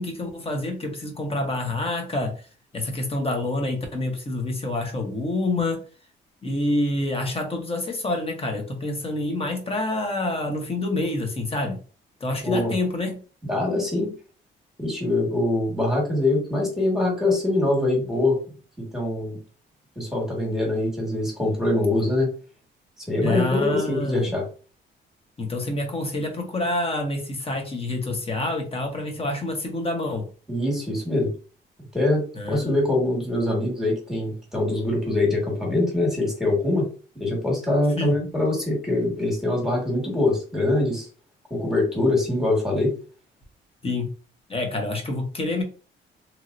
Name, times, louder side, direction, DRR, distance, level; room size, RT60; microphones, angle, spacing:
voice 1, 0.0-2.4 2.7-5.8 6.4-11.8 12.2-13.1 23.2-24.3 25.4-30.3 32.3-32.8 38.0-38.1 43.8-44.1 44.5-45.6, left 2 dB, 30° left, 3 dB, 1.1 m, -27 dB
voice 2, 13.4-14.1 14.8-18.4 18.8-19.4 20.0-22.3 23.1-24.4 30.5-31.3 31.9-36.9 37.2-41.1 41.5-42.9, left 2 dB, ahead, -2 dB, 1.7 m, -23 dB
3.0 x 2.8 x 2.6 m, 0.36 s
cardioid pair, 90°, 20 cm